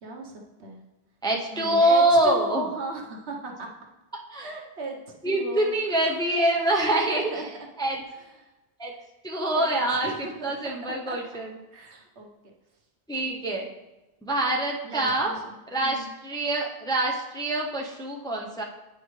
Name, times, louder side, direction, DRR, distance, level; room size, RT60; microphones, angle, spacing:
voice 1, 0.0-0.8 1.5-3.7 4.3-7.7 8.2-8.5 9.4-10.7 11.1-11.2 11.7-12.3 13.2-13.6 14.8-16.1, right 2 dB, 80° right, 0 dB, 1.3 m, -36 dB
voice 2, 1.2-2.6 4.3-4.5 5.2-7.3 7.8-8.0 8.8-8.9 9.2-11.5 13.1-13.7 14.2-15.3 15.7-18.6, right 1 dB, 5° left, -1 dB, 0.5 m, -25 dB
9.1 x 5.0 x 3.2 m, 1.1 s
omnidirectional pair, 1.1 m